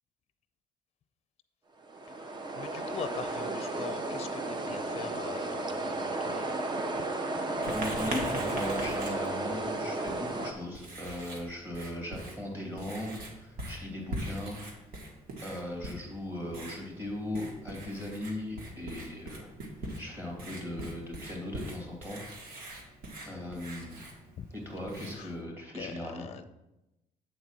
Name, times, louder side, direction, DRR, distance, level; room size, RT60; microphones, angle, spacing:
sound 1, 1.8-10.5, right 2 dB, 30° right, 0.7 m, -33 dB
voice 1, 2.6-6.6 7.0-7.1 24.4-24.5 25.1-25.3 25.7-26.5, left 7 dB, 45° left, 10 dB, 0.5 m, -43 dB
voice 2, 7.6-14.6 15.4-19.5 19.8-22.2 23.2-24.1 24.5-26.3, left 1 dB, 15° right, -1 dB, 2.5 m, -38 dB
Writing, 7.6-25.4, right 1 dB, 90° right, 1.6 m, -43 dB
7.9 x 4.0 x 6.0 m, 0.93 s
cardioid pair, 120°, 15 cm